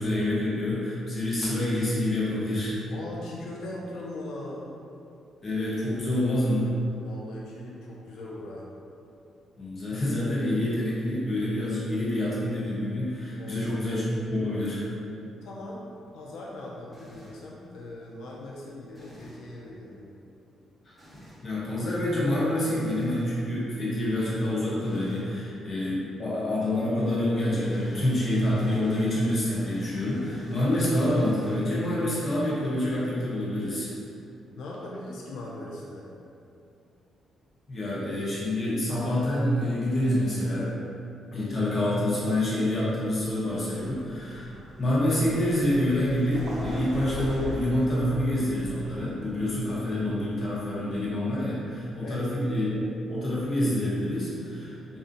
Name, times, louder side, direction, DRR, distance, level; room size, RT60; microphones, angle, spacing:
voice 1, 0.0-2.8 5.4-6.8 9.6-15.0 20.9-21.0 21.4-33.9 37.7-40.7 41.3-44.5 44.8-52.8 53.1-55.0, left 1 dB, 35° left, -7 dB, 0.7 m, -27 dB
voice 2, 2.9-4.7 7.0-8.7 13.4-13.7 15.4-20.1 34.6-36.1 52.0-52.3, left 1 dB, 85° left, -4 dB, 0.3 m, -40 dB
sound 1, 16.9-17.5 18.9-19.5 21.0-21.4 22.9-23.4 24.8-25.3 27.6-31.9, equal, 5° right, 0.7 m, -49 dB
Vehicle, 43.0-51.7, equal, 85° right, 0.6 m, -42 dB
2.5 x 2.1 x 2.5 m, 2.6 s
cardioid pair, 115°, 0 cm